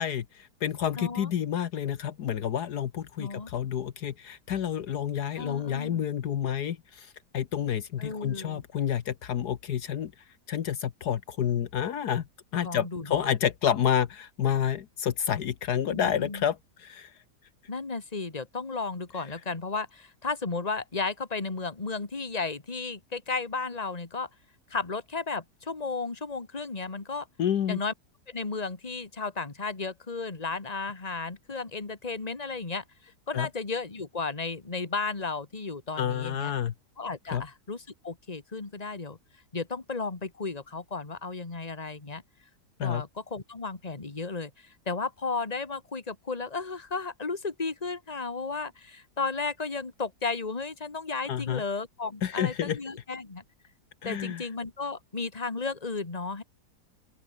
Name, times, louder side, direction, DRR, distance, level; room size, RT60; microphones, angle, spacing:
voice 1, 0.0-10.1 10.5-12.2 12.5-17.1 27.4-27.8 33.3-33.5 36.0-36.7 37.3-37.4 42.8-43.0 51.3-51.6 52.2-52.8 54.0-54.5, left 9 dB, 70° left, 1.6 m, -29 dB
voice 2, 1.0-1.3 3.2-3.5 5.4-6.0 8.0-8.6 12.6-13.4 15.9-16.4 17.7-24.3 24.7-27.3 27.7-27.9 28.3-32.8 33.3-36.5 37.0-39.2 39.5-42.2 42.8-53.4 54.0-56.4, left 4 dB, 25° left, 2.1 m, -34 dB
open air
omnidirectional pair, 1.8 m